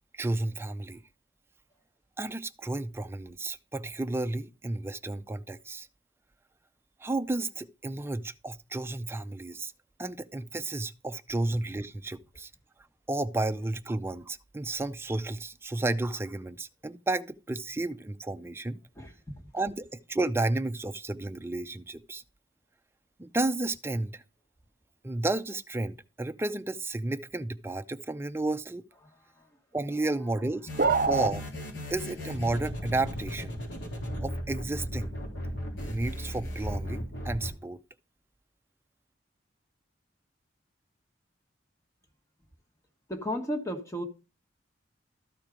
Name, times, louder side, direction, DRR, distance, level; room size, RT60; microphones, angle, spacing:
voice 1, 0.1-1.0 2.2-5.9 7.0-9.7 10.0-12.5 13.1-18.8 19.5-22.2 23.2-24.2 25.0-28.8 29.7-30.7 31.1-31.4 31.9-33.6 34.2-35.1 35.9-37.8, right 2 dB, 15° right, 0.5 m, -32 dB
voice 2, 18.9-19.4 29.0-29.6 30.1-30.5 30.8-31.1 43.1-44.0, equal, 15° left, 1.4 m, -36 dB
sound 1, 30.6-37.5, equal, 90° left, 3.0 m, -36 dB
sound 2, 30.8-31.3, right 4 dB, 50° right, 0.7 m, -24 dB
13.0 x 4.5 x 5.0 m
head